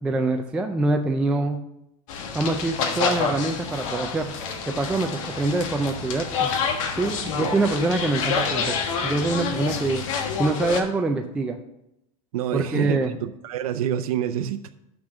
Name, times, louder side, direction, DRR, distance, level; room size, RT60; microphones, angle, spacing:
voice 1, 0.0-1.6 2.3-4.4 4.7-6.5 7.0-8.7 9.0-10.0 10.4-11.6 12.5-13.1, right 2 dB, 5° right, 4 dB, 0.3 m, -25 dB
sound 1, 2.1-10.8, left 6 dB, 60° left, 1.4 m, -28 dB
voice 2, 12.3-14.7, right 10 dB, 85° right, 8 dB, 0.6 m, -27 dB
6.5 x 6.0 x 7.3 m, 0.85 s
supercardioid pair, 155°, 18 cm